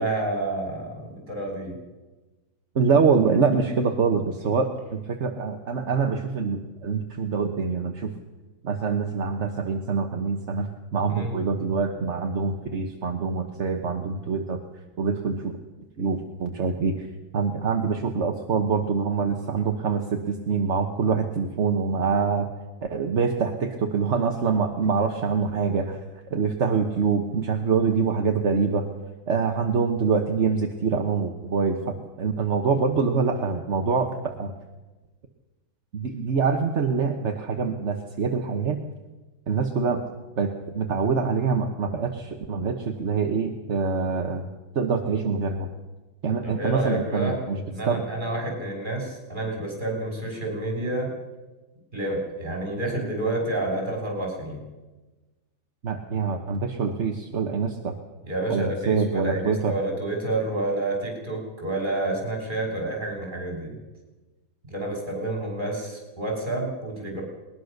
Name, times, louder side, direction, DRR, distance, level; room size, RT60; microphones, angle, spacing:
voice 1, 0.0-1.8 11.1-11.4 46.4-47.4 47.7-51.1 51.9-54.6 58.2-63.7 64.7-67.2, right 2 dB, 25° right, 0 dB, 6.3 m, -29 dB
voice 2, 2.7-8.1 8.6-14.6 15.0-15.6 16.0-17.1 17.3-22.5 22.9-26.0 26.3-28.9 29.3-34.5 35.9-38.8 39.5-40.0 40.4-44.5 44.7-45.7 46.2-47.6 47.9-48.0 55.8-57.9 58.5-59.7, right 5 dB, 40° right, 4 dB, 1.3 m, -25 dB
20.0 x 20.0 x 6.6 m, 1.2 s
omnidirectional pair, 2.1 m